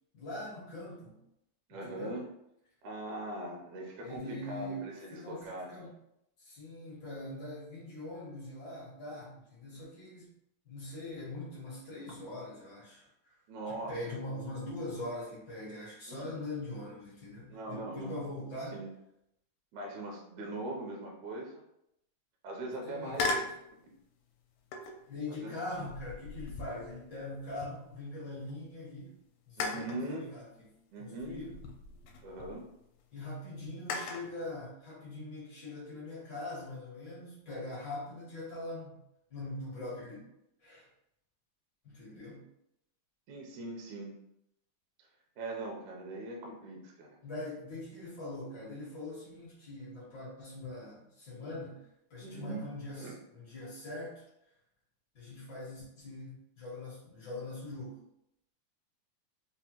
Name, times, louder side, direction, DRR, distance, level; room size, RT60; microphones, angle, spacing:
voice 1, 0.1-1.2 1.7-2.2 4.0-5.9 6.4-10.3 10.6-13.0 13.7-18.8 22.8-23.4 25.1-29.1 29.5-31.6 33.1-39.0 39.3-40.3 40.6-40.8 41.8-42.4 47.2-54.2 55.1-58.0, left 2 dB, 65° left, -7 dB, 1.1 m, -42 dB
voice 2, 1.7-2.3 2.8-5.7 13.5-14.2 16.1-16.3 17.5-18.2 18.7-18.9 19.7-21.6 22.4-23.3 23.8-23.9 25.3-25.6 29.6-30.3 30.9-31.5 32.2-32.7 43.3-44.1 45.4-47.2 52.2-52.7 53.0-53.2, right 2 dB, 80° right, -1 dB, 1.7 m, -41 dB
sound 1, 23.1-23.6 24.7-25.1 25.8-28.1 28.5-28.6 29.6-30.0 31.2-32.6 33.9-34.3, left 3 dB, 85° left, 2.2 m, -37 dB
5.3 x 2.2 x 2.9 m, 0.80 s
omnidirectional pair, 3.9 m